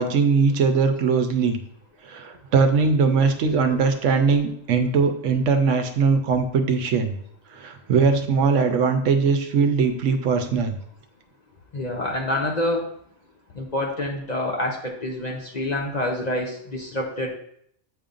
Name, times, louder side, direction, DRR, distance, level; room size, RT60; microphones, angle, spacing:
voice 1, 0.0-1.6 2.0-7.2 7.5-10.8, right 5 dB, 75° right, 7 dB, 1.0 m, -20 dB
voice 2, 11.7-12.9 13.6-17.4, left 1 dB, 45° left, 0 dB, 0.7 m, -27 dB
7.9 x 5.3 x 2.5 m, 0.70 s
omnidirectional pair, 1.3 m